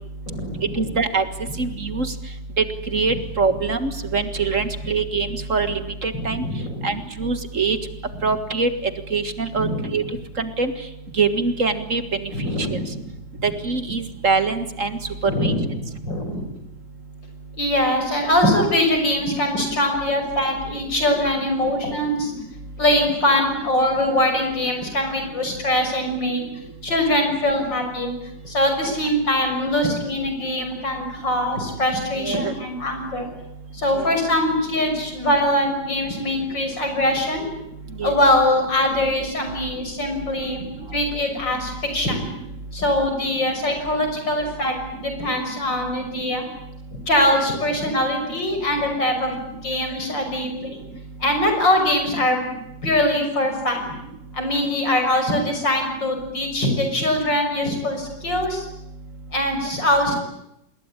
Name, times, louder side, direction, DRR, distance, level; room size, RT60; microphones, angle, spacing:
voice 1, 0.3-0.9 6.1-6.9 9.6-9.9 12.3-13.0 13.4-13.5 15.2-16.5 17.6-22.3 22.8-26.4 26.8-28.1 28.4-33.3 33.7-37.5 38.0-40.6 40.9-42.3 42.7-46.4 47.1-49.3 49.6-50.8 51.2-52.4 52.8-53.9 54.3-58.7 59.3-60.1, left 1 dB, 80° left, 5 dB, 7.0 m, -22 dB
voice 2, 0.8-1.2 1.6-2.1 2.6-2.7 2.9-6.5 6.8-7.8 8.2-8.7 9.1-10.0 10.4-10.7 11.2-12.2 12.6-12.7 13.4-14.9 15.4-15.5 28.9-29.0 32.2-32.5 33.9-34.1 38.0-38.2, right 4 dB, 45° right, 10 dB, 2.0 m, -23 dB
27.0 x 20.5 x 9.9 m, 0.83 s
omnidirectional pair, 2.0 m